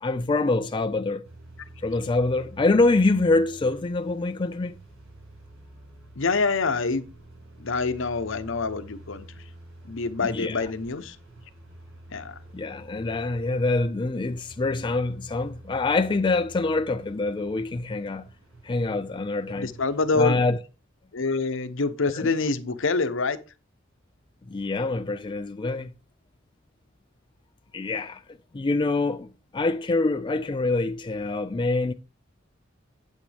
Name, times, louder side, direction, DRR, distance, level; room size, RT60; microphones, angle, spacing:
voice 1, 0.0-1.3 1.8-4.8 10.2-10.7 12.5-18.3 18.6-19.7 20.1-20.6 22.1-22.3 24.5-25.9 27.7-28.2 28.5-31.9, left 3 dB, 25° left, 0.4 m, -25 dB
sound 1, 1.2-20.3, right 1 dB, 85° right, 6.4 m, -49 dB
voice 2, 6.2-7.0 7.6-9.3 9.8-11.2 12.1-12.3 19.6-20.4 21.1-23.4, left 4 dB, 65° left, 0.8 m, -26 dB
8.5 x 8.5 x 3.4 m
head